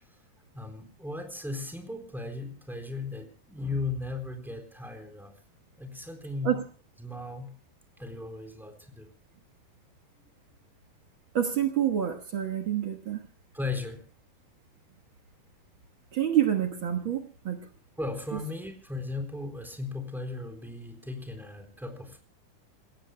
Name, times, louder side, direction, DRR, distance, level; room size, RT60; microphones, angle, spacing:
voice 1, 0.5-5.3 5.8-6.6 7.0-7.5 8.0-9.1 13.5-14.0 17.6-22.2, left 3 dB, ahead, 5 dB, 3.5 m, -37 dB
voice 2, 11.3-13.2 16.1-17.6, right 10 dB, 85° right, 4 dB, 1.1 m, -27 dB
28.5 x 16.5 x 2.2 m, 0.40 s
omnidirectional pair, 4.5 m